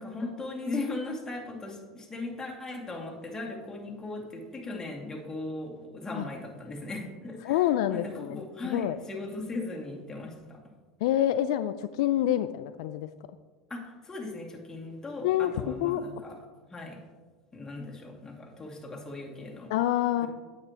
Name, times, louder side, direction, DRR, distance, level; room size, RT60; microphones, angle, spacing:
voice 1, 0.0-7.6 7.9-10.6 13.7-16.4 16.7-17.0 17.5-19.7 20.2-20.3, left 2 dB, 15° left, -1 dB, 2.2 m, -38 dB
voice 2, 7.4-9.0 11.0-13.1 15.2-15.5 15.8-16.0 19.7-20.3, left 12 dB, 75° left, 11 dB, 0.3 m, -27 dB
9.6 x 8.2 x 2.9 m, 1.4 s
hypercardioid pair, 90°, 3 cm